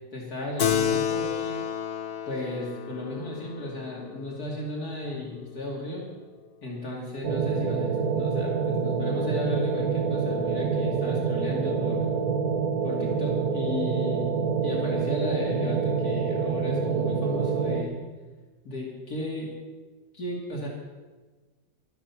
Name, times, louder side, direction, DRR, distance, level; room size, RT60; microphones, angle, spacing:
voice 1, 0.1-1.6 2.3-6.1 6.6-12.1 12.8-14.3 14.6-18.0 18.6-19.5 20.1-20.7, left 2 dB, 65° left, -3 dB, 3.0 m, -35 dB
Keyboard (musical), 0.6-5.5, left 8 dB, 50° left, 0.8 m, -31 dB
sound 1, 7.2-17.8, right 5 dB, 60° right, 1.7 m, -26 dB
14.5 x 12.5 x 5.8 m, 1.3 s
omnidirectional pair, 1.7 m